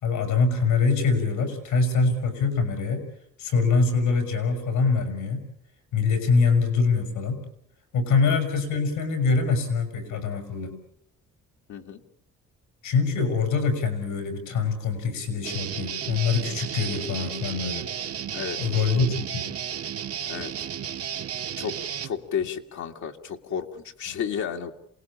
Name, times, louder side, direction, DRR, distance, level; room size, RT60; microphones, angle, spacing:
voice 1, 0.0-3.0 3.4-5.5 5.9-7.4 7.9-10.8 12.8-17.8 18.6-19.5 24.1-24.2, left 4 dB, 90° left, 8 dB, 6.8 m, -24 dB
voice 2, 11.7-12.0 18.3-18.6 20.3-20.5 21.6-21.8 22.0-24.7, left 7 dB, 70° left, 3 dB, 2.0 m, -32 dB
Guitar, 15.4-22.1, right 9 dB, 50° right, 1.3 m, -33 dB
27.5 x 19.0 x 8.9 m, 0.71 s
cardioid pair, 90°, 30 cm